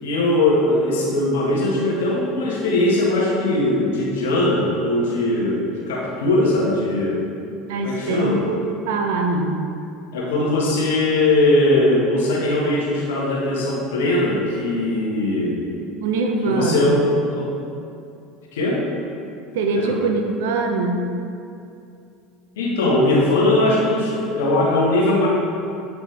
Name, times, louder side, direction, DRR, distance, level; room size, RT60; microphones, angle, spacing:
voice 1, 0.0-7.2 7.8-8.4 10.1-15.6 16.5-17.6 18.5-18.8 19.7-20.0 22.6-25.3, left 1 dB, 80° left, -3 dB, 1.5 m, -20 dB
voice 2, 7.7-9.6 16.0-17.0 19.5-21.0, right 3 dB, 75° right, 3 dB, 0.8 m, -23 dB
8.1 x 5.0 x 3.4 m, 2.6 s
hypercardioid pair, 85°, 0 cm